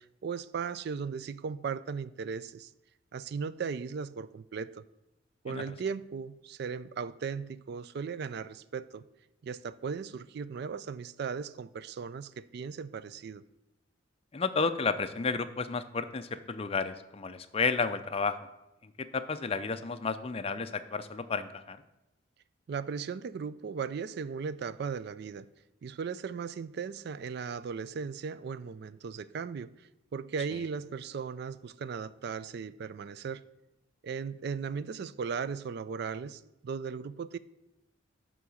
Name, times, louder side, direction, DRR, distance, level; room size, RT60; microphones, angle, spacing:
voice 1, 0.0-2.7 3.1-4.8 5.4-9.1 9.4-13.4 22.7-25.5 25.8-33.4 34.0-37.4, right 6 dB, 50° right, 0.3 m, -37 dB
voice 2, 14.3-18.4 18.8-21.8, left 4 dB, 30° left, 0.5 m, -32 dB
11.0 x 3.8 x 7.1 m
head